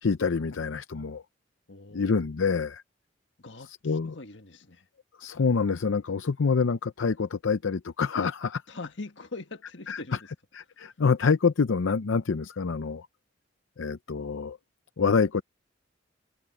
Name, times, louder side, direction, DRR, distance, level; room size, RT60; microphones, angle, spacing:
voice 1, 0.0-1.2 1.9-2.8 3.7-4.2 5.2-8.6 9.9-10.0 10.5-13.1 13.8-14.6 15.0-15.4, left 5 dB, 85° left, 0.6 m, -26 dB
voice 2, 1.7-2.2 3.4-4.9 8.7-10.3, left 3 dB, 70° left, 1.7 m, -42 dB
open air
head